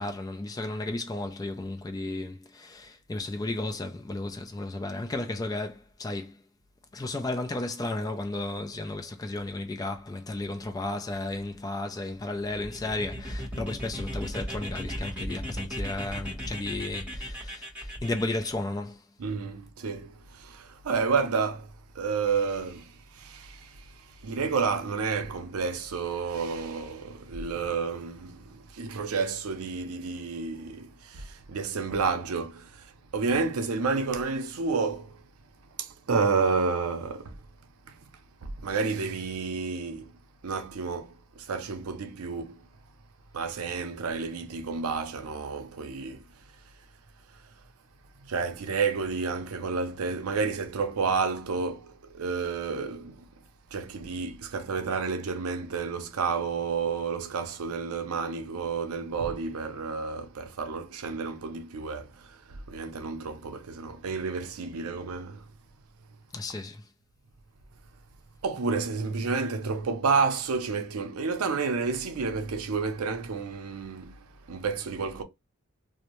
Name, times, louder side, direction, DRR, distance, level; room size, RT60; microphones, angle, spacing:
voice 1, 0.0-6.4 6.9-19.0 66.3-66.8, left 2 dB, 15° left, 0.3 m, -34 dB
sound 1, 12.4-18.5, equal, 5° right, 1.2 m, -36 dB
voice 2, 19.2-35.2 35.8-37.3 38.0-38.1 38.4-40.1 40.4-42.7 43.3-46.2 48.2-53.3 53.7-65.5 68.4-75.2, right 4 dB, 90° right, 0.5 m, -30 dB
2.6 x 2.1 x 3.0 m
head